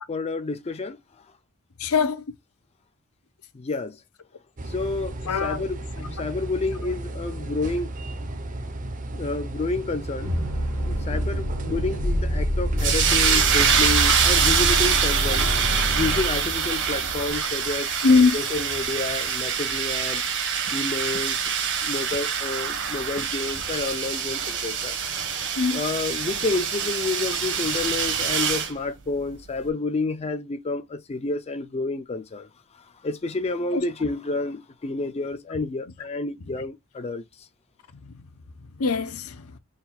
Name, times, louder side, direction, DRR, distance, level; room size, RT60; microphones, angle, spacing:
voice 1, 0.1-1.0 3.5-4.0 4.7-8.2 9.1-10.3 10.8-15.5 15.9-17.9 18.3-20.2 20.7-21.4 21.8-25.0 25.7-32.5 33.0-37.2, left 3 dB, 30° left, 0.4 m, -29 dB
voice 2, 1.8-2.2 5.3-5.7 18.0-18.4 25.6-25.8 33.7-33.8 38.0-38.1 38.8-39.4, left 4 dB, 75° left, 0.7 m, -21 dB
sound 1, 4.6-16.2, right 1 dB, 35° right, 0.7 m, -34 dB
sound 2, 10.2-17.4, equal, 80° right, 1.6 m, -27 dB
sound 3, 12.8-28.7, right 7 dB, 60° right, 1.2 m, -25 dB
4.0 x 2.3 x 4.2 m
head